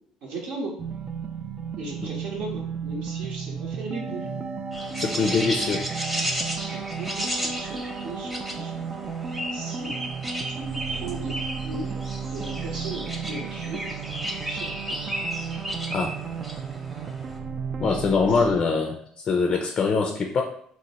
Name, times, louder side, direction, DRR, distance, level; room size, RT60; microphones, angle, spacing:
voice 1, 0.2-0.7 1.8-4.3 6.6-9.1 9.5-9.9 10.5-12.0 12.3-13.8 14.4-15.1 18.3-18.6, right 2 dB, 70° right, -2 dB, 0.8 m, -37 dB
sound 1, 0.8-18.6, right 6 dB, 40° right, 0.3 m, -34 dB
sound 2, 4.7-17.4, equal, 5° right, 0.7 m, -34 dB
voice 2, 5.0-5.9 15.9-16.1 17.8-20.4, left 4 dB, 50° left, 3 dB, 0.4 m, -23 dB
2.9 x 2.0 x 4.1 m, 0.65 s
supercardioid pair, 70°, 2 cm